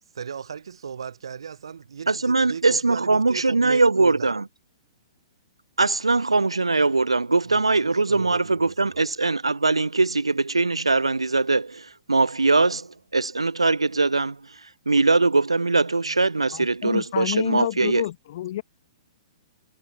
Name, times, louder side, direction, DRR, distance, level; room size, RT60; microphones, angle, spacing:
voice 1, 0.1-4.3 7.5-9.0, right 7 dB, 65° right, 2.4 m, -37 dB
voice 2, 2.1-4.5 5.8-14.4 14.9-18.0, right 3 dB, 85° right, 0.5 m, -21 dB
voice 3, 16.5-18.6, left 13 dB, 50° left, 5.1 m, -29 dB
figure-of-eight pair, 115°, 3 cm